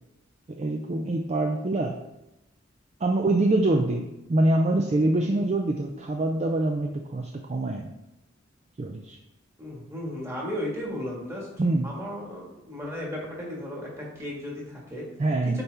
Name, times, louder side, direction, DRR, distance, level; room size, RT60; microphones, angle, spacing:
voice 1, 0.5-2.0 3.0-4.0 4.3-7.9 8.8-9.2 11.6-11.9 15.2-15.6, right 2 dB, 35° right, 3 dB, 0.4 m, -25 dB
voice 2, 3.7-4.0 9.6-11.5 11.8-15.1 15.4-15.6, left 1 dB, 15° right, -3 dB, 1.6 m, -35 dB
8.0 x 4.3 x 3.4 m, 0.92 s
head